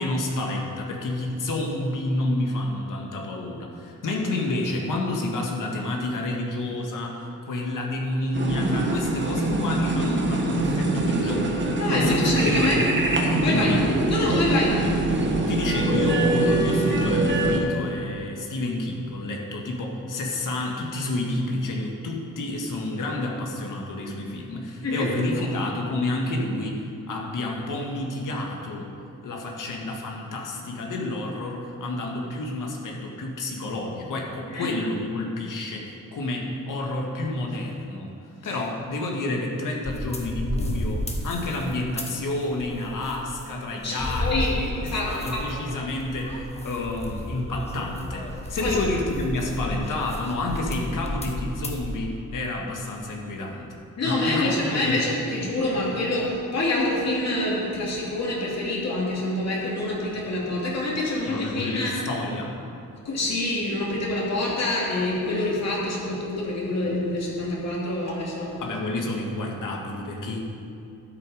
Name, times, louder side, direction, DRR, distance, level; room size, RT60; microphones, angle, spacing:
voice 1, 0.0-13.0 13.4-14.3 15.5-28.9 29.2-38.1 38.4-53.8 54.0-54.5 54.8-55.1 61.3-62.6 68.6-70.4, left 2 dB, 70° left, 0 dB, 1.8 m, -29 dB
sound 1, 8.3-17.6, right 2 dB, 35° right, 1.4 m, -23 dB
voice 2, 11.8-12.8 13.4-13.8 14.1-14.7 24.8-25.1 25.3-25.4 34.5-34.7 43.8-44.5 44.8-45.7 48.6-48.8 54.0-62.0 63.0-68.6, left 2 dB, 50° left, -4 dB, 2.9 m, -26 dB
sound 2, 39.8-42.2 42.5-43.4 43.7-52.0, left 1 dB, 20° left, 1.1 m, -32 dB
13.0 x 8.5 x 5.0 m, 2.6 s
wide cardioid pair, 135°, 33 cm